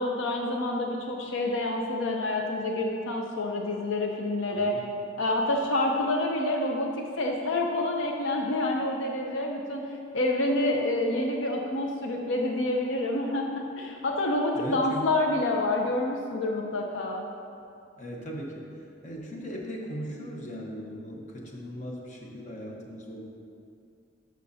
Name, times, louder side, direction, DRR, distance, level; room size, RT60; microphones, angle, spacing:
voice 1, 0.0-4.8 5.2-9.9 10.1-17.2, left 2 dB, 80° left, 1 dB, 0.6 m, -28 dB
voice 2, 4.5-4.8 14.5-15.0 18.0-18.7 19.0-23.3, equal, 40° left, -2 dB, 1.1 m, -38 dB
12.0 x 6.4 x 2.8 m, 2.5 s
head